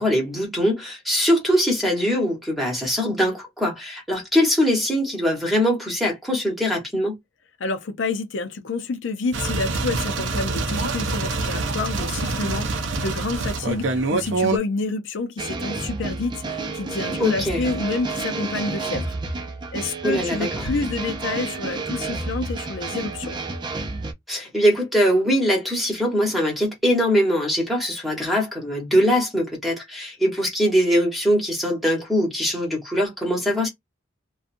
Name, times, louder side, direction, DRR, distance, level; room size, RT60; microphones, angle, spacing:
voice 1, 0.0-7.2 17.2-17.6 20.0-20.6 24.3-33.7, equal, ahead, 1.1 m, -22 dB
voice 2, 7.6-19.1 19.7-23.4, left 3 dB, 80° left, 0.5 m, -28 dB
sound 1, 9.3-14.6, right 3 dB, 75° right, 0.6 m, -25 dB
sound 2, 15.4-24.1, right 3 dB, 25° right, 0.4 m, -30 dB
2.5 x 2.3 x 2.5 m
head